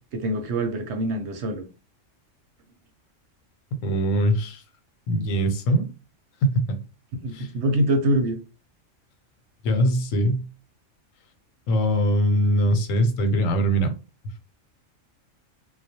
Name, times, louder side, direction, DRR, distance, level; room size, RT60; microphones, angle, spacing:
voice 1, 0.1-1.6 7.2-8.4, right 1 dB, 70° right, 0.8 m, -24 dB
voice 2, 3.7-4.6 5.1-5.9 6.4-6.8 7.3-7.5 9.6-10.4 11.7-13.9, equal, 90° left, 1.0 m, -22 dB
2.3 x 2.0 x 2.7 m
omnidirectional pair, 1.3 m